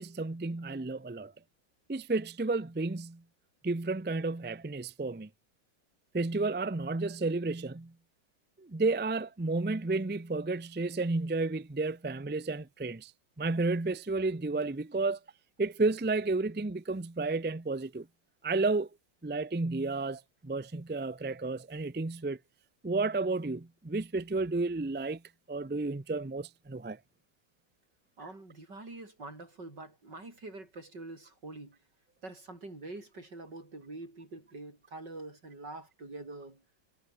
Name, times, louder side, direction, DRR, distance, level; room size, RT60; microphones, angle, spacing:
voice 1, 0.0-1.3 1.9-3.2 3.6-5.3 6.1-7.9 8.7-13.1 13.4-15.2 15.6-18.0 18.4-18.9 19.2-22.4 22.8-25.2 25.5-27.0, right 3 dB, 15° right, 0.3 m, -32 dB
voice 2, 28.2-31.8 32.2-36.6, right 2 dB, 70° right, 7.3 m, -45 dB
omnidirectional pair, 1.9 m